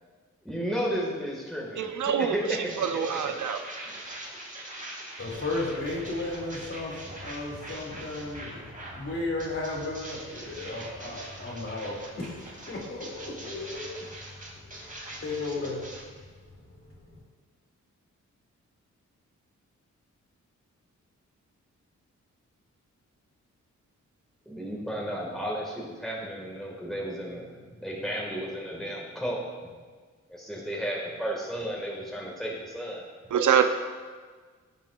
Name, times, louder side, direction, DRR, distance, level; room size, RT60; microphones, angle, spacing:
voice 1, 0.4-1.9 2.2-2.6 24.5-29.4 30.3-33.0, equal, ahead, -4 dB, 1.9 m, -33 dB
voice 2, 1.7-3.6 33.3-33.6, right 8 dB, 75° right, 7 dB, 0.6 m, -25 dB
sound 1, 2.7-9.0 9.4-16.0, right 1 dB, 25° right, 2.4 m, -43 dB
voice 3, 5.2-14.0 14.7-14.8 15.2-15.8 16.9-17.1, left 2 dB, 45° left, -3 dB, 2.5 m, -34 dB
16.0 x 5.4 x 2.5 m, 1.5 s
cardioid pair, 65°, 31 cm